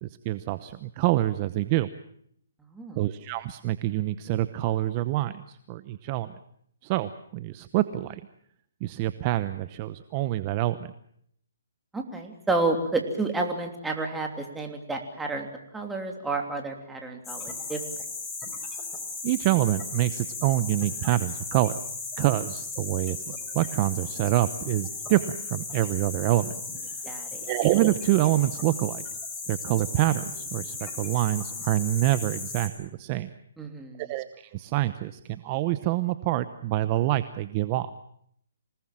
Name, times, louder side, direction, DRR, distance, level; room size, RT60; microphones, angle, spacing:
voice 1, 0.0-1.9 3.0-6.3 6.8-8.2 8.8-10.9 19.2-21.8 22.2-26.5 27.4-29.0 29.5-33.3 34.0-34.3 34.5-37.9, right 15 dB, 30° right, 13 dB, 0.9 m, -26 dB
voice 2, 2.7-3.0 11.9-15.5 15.7-17.8 27.0-27.4 33.6-34.0, right 3 dB, 5° right, 3 dB, 3.1 m, -30 dB
sound 1, 17.2-32.7, left 3 dB, 10° left, 4.5 m, -36 dB
26.5 x 19.0 x 7.5 m, 0.68 s
hypercardioid pair, 155°, 0 cm